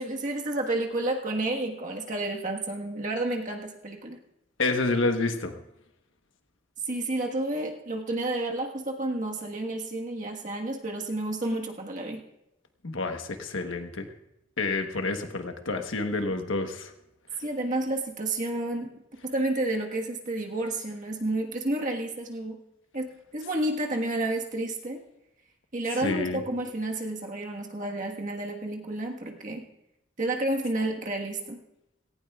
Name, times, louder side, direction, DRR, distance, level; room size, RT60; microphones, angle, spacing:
voice 1, 0.0-4.2 6.9-12.2 17.4-18.9 19.2-22.6 22.9-25.0 25.7-29.7 30.2-31.6, right 2 dB, 40° right, 1 dB, 1.5 m, -30 dB
voice 2, 4.6-5.5 12.8-14.1 14.6-16.9 26.0-26.4, left 3 dB, 80° left, 6 dB, 1.2 m, -28 dB
17.5 x 15.5 x 2.4 m, 0.85 s
head